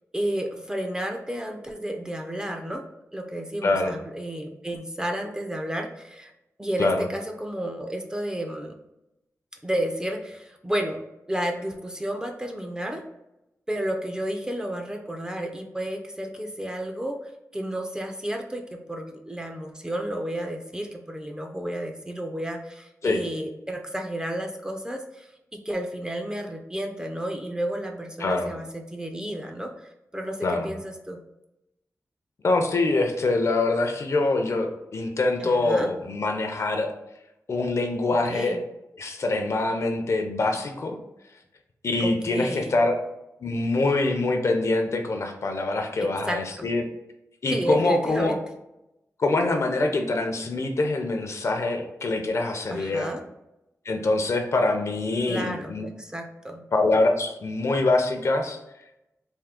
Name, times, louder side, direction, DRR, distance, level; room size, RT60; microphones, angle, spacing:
voice 1, 0.1-2.8 3.1-6.3 6.6-8.7 9.6-11.0 11.3-13.0 13.7-30.4 30.6-31.2 35.4-35.9 38.3-38.6 42.0-42.8 46.0-46.7 47.5-48.4 52.7-53.2 55.3-56.7, right 1 dB, 15° right, 3 dB, 0.4 m, -32 dB
voice 2, 3.6-3.9 6.8-7.0 23.0-23.2 28.2-28.5 30.4-30.7 32.4-36.9 37.5-38.6 39.0-41.0 41.8-42.9 43.4-46.8 47.4-48.4 49.2-53.1 53.9-55.9 56.7-58.6, left 2 dB, 55° left, 4 dB, 0.5 m, -24 dB
3.6 x 2.6 x 3.5 m, 0.91 s
wide cardioid pair, 140°, 6 cm